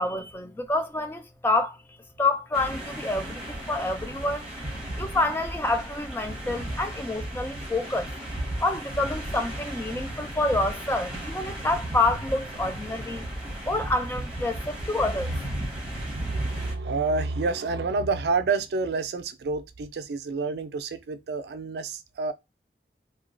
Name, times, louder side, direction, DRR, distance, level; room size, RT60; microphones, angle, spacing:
voice 1, 0.0-1.8 2.2-4.5 5.0-8.1 8.6-13.2 13.7-15.4, left 2 dB, 10° left, 0.3 m, -27 dB
sound 1, 2.5-16.7, right 1 dB, 5° right, 0.9 m, -35 dB
voice 2, 15.7-22.3, right 4 dB, 70° right, 0.4 m, -29 dB
2.9 x 2.2 x 2.4 m
head